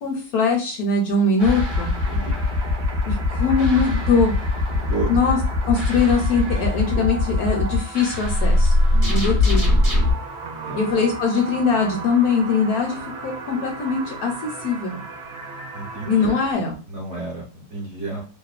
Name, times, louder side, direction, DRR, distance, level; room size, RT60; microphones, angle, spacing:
voice 1, 0.0-1.9 3.1-4.3 5.1-5.4 5.7-8.7 9.1-9.7 10.8-15.0 16.0-16.8, left 4 dB, 70° left, 2 dB, 1.0 m, -21 dB
sound 1, 1.4-10.1, left 2 dB, 30° right, 0.7 m, -21 dB
sound 2, 1.4-16.5, right 3 dB, 70° right, 0.6 m, -36 dB
voice 2, 4.7-5.1 6.9-7.0 8.9-9.4 10.6-10.8 15.7-16.1 16.9-18.2, right 3 dB, 50° right, -4 dB, 1.0 m, -31 dB
2.8 x 2.1 x 2.4 m, 0.36 s
omnidirectional pair, 1.8 m